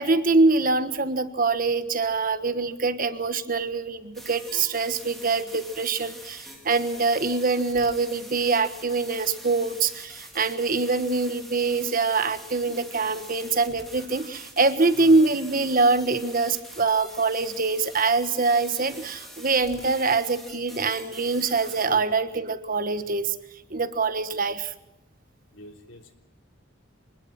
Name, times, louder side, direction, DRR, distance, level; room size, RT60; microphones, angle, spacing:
voice 1, 0.0-23.3 23.7-24.7, right 3 dB, 45° right, 10 dB, 1.4 m, -24 dB
sound 1, 4.1-21.9, right 1 dB, ahead, 4.0 m, -45 dB
voice 2, 25.5-26.1, left 1 dB, 70° left, 3 dB, 3.5 m, -45 dB
25.0 x 20.5 x 6.0 m, 0.92 s
head